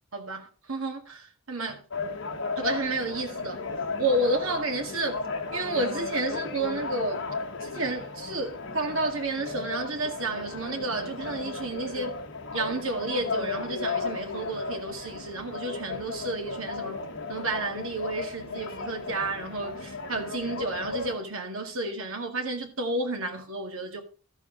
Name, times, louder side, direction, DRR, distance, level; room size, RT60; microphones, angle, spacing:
voice 1, 0.1-1.8 2.6-3.6 4.0-5.2 5.5-7.3 7.6-12.2 12.5-17.0 17.3-24.0, right 2 dB, 65° right, 2.1 m, -31 dB
sound 1, 1.9-21.1, left 4 dB, 55° left, 1.5 m, -35 dB
13.0 x 7.0 x 3.9 m
head